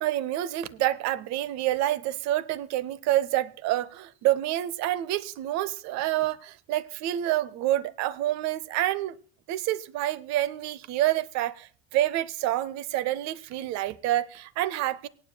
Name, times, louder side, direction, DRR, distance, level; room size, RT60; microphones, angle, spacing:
voice 1, 0.0-9.2 9.5-15.1, right 14 dB, 55° right, 0.8 m, -28 dB
24.5 x 9.7 x 2.2 m
hypercardioid pair, 65°, 32 cm